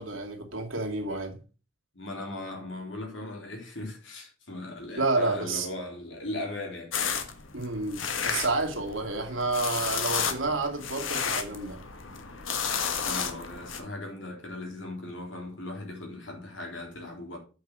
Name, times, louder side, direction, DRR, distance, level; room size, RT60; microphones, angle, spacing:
voice 1, 0.0-1.4 5.0-5.7 7.5-11.8, right 3 dB, 90° right, 2.4 m, -30 dB
voice 2, 1.9-7.2 13.0-17.4, left 2 dB, 70° left, 3.7 m, -38 dB
sound 1, 6.9-13.8, left 6 dB, 90° left, 1.5 m, -32 dB
8.4 x 5.9 x 6.1 m
head